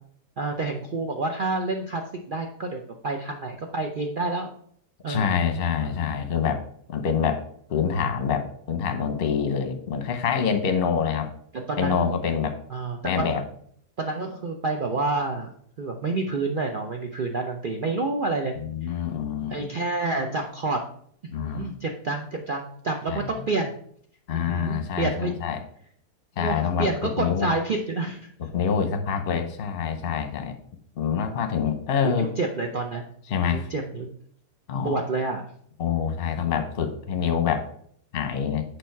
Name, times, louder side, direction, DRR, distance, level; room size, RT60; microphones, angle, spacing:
voice 1, 0.4-2.0 2.3-4.5 5.0-5.3 5.8-6.0 11.5-12.2 12.7-13.4 14.0-15.5 15.8-18.5 18.8-19.0 19.5-20.8 21.4-23.7 24.4-25.4 26.4-28.2 32.0-33.1 33.5-34.1 34.8-35.4, right 3 dB, 75° right, 3 dB, 0.4 m, -28 dB
voice 2, 5.1-6.6 6.9-7.4 7.7-11.3 11.8-12.6 13.0-13.4 18.6-19.7 21.3-21.7 23.1-23.3 24.3-25.6 26.4-27.5 28.5-30.6 31.0-32.3 33.3-33.7 34.7-35.0 35.8-37.7 38.1-38.6, left 7 dB, 45° left, 7 dB, 0.9 m, -26 dB
6.9 x 4.9 x 4.5 m, 0.62 s
omnidirectional pair, 1.8 m